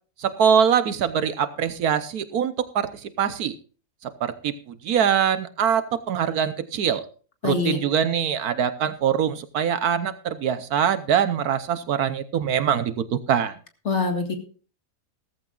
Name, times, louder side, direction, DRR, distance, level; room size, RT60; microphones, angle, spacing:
voice 1, 0.2-3.5 4.0-7.0 7.4-13.5, right 8 dB, 70° right, 13 dB, 1.3 m, -23 dB
voice 2, 7.4-7.8 13.9-14.3, left 3 dB, 45° left, 4 dB, 2.2 m, -24 dB
17.0 x 14.5 x 2.4 m, 0.38 s
omnidirectional pair, 1.7 m